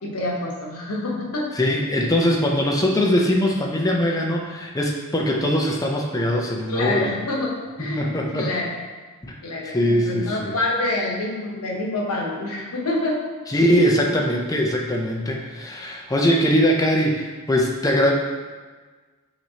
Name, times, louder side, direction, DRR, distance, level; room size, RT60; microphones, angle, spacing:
voice 1, 0.0-1.6 6.7-8.8 9.4-13.2, left 2 dB, 90° left, -1 dB, 0.9 m, -27 dB
voice 2, 1.6-7.1 7.9-8.5 9.2-9.3 9.7-10.5 13.5-18.1, equal, 15° left, 0 dB, 0.5 m, -21 dB
5.8 x 3.1 x 2.8 m, 1.4 s
head